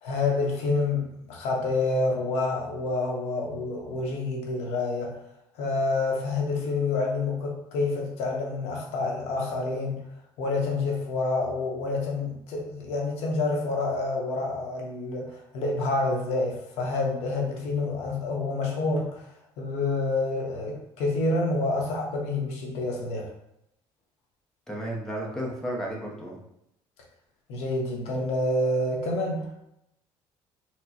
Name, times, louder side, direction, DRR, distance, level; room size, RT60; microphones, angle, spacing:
voice 1, 0.0-5.1 5.6-10.0 10.4-19.2 19.6-23.3 27.5-29.6, left 2 dB, 90° left, -1 dB, 0.8 m, -28 dB
voice 2, 24.7-26.4, right 1 dB, 5° left, -2 dB, 0.5 m, -33 dB
4.3 x 2.0 x 2.7 m, 0.81 s
cardioid pair, 160°, 10 cm